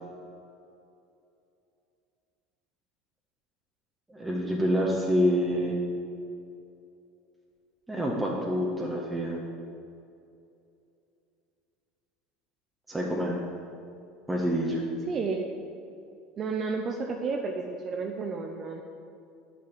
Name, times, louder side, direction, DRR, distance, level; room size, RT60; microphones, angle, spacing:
voice 1, 4.1-5.8 7.9-9.4 12.9-13.3 14.3-14.8, equal, 10° right, -3 dB, 1.8 m, -27 dB
voice 2, 15.1-15.4 16.4-18.8, right 4 dB, 35° right, 3 dB, 0.9 m, -31 dB
10.0 x 7.0 x 7.5 m, 2.6 s
figure-of-eight pair, 70°, 0 cm